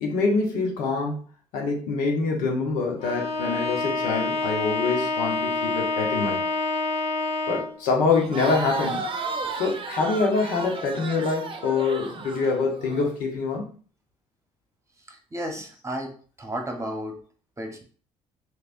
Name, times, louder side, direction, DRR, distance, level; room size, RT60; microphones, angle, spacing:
voice 1, 0.0-1.2 1.5-6.5 7.5-9.0 9.6-13.6, left 4 dB, 75° left, 1 dB, 1.0 m, -25 dB
Bowed string instrument, 3.0-7.8, left 2 dB, 45° left, 0.8 m, -27 dB
Crowd, 8.1-13.1, right 4 dB, 40° right, 0.6 m, -33 dB
voice 2, 15.1-16.1 16.4-17.2 17.6-17.8, equal, 20° right, 3 dB, 1.0 m, -33 dB
3.2 x 3.2 x 2.5 m, 0.42 s
supercardioid pair, 65°, 14 cm